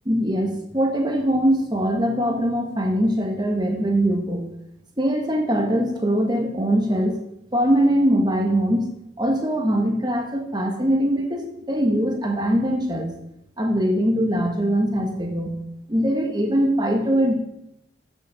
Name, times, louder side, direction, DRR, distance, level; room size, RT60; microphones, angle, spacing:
voice 1, 0.0-4.5 5.0-7.2 7.5-8.9 9.2-13.2 13.6-15.6 15.9-17.3, equal, 20° right, 2 dB, 1.3 m, -22 dB
7.8 x 7.1 x 5.1 m, 0.81 s
head